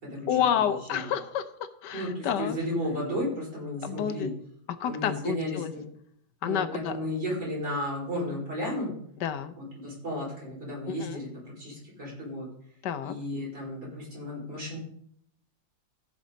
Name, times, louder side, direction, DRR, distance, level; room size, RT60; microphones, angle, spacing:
voice 1, 0.3-2.6 3.8-4.3 4.8-5.7 6.4-7.0 9.2-9.5 10.9-11.2 12.8-13.1, left 9 dB, 70° left, 11 dB, 1.3 m, -29 dB
voice 2, 1.9-4.3 4.8-5.8 6.4-8.9 9.7-12.5 13.0-14.8, equal, 60° right, -6 dB, 5.7 m, -33 dB
15.0 x 6.4 x 4.0 m, 0.67 s
omnidirectional pair, 2.0 m